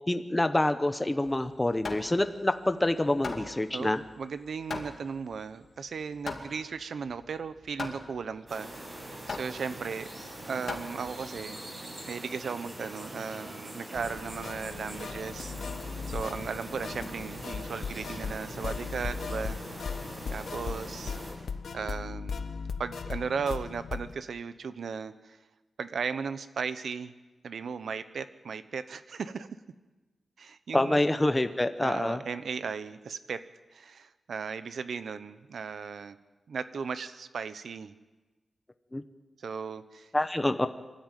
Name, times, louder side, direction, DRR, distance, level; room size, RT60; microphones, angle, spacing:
voice 1, 0.1-4.0 30.7-32.2 38.9-39.0 40.1-40.7, left 1 dB, 15° left, 9 dB, 0.9 m, -26 dB
Hammer, 1.2-11.5, left 4 dB, 50° left, 2.6 m, -41 dB
voice 2, 3.7-10.1 10.4-15.5 16.1-19.6 20.3-21.2 21.7-22.4 22.8-25.4 25.8-27.1 27.4-29.5 30.4-31.0 31.8-33.4 33.7-36.2 36.5-37.9 39.4-40.1, right 5 dB, 75° right, 12 dB, 1.0 m, -36 dB
sound 1, 8.5-21.3, right 1 dB, 30° right, 7.4 m, -43 dB
sound 2, 13.9-24.1, left 5 dB, 70° left, 1.0 m, -38 dB
25.0 x 13.5 x 9.2 m, 1.2 s
wide cardioid pair, 160°, 0 cm